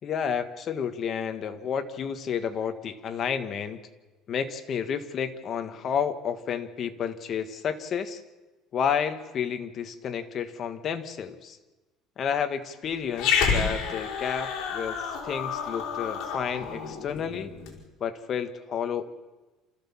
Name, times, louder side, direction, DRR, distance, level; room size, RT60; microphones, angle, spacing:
voice 1, 0.0-3.8 4.3-8.2 8.7-11.6 12.2-17.5 18.0-19.0, left 7 dB, 35° left, 8 dB, 1.6 m, -31 dB
Growling, 13.1-17.8, left 6 dB, 60° left, 4.9 m, -29 dB
28.5 x 14.5 x 7.3 m, 1.2 s
cardioid pair, 150°, 0 cm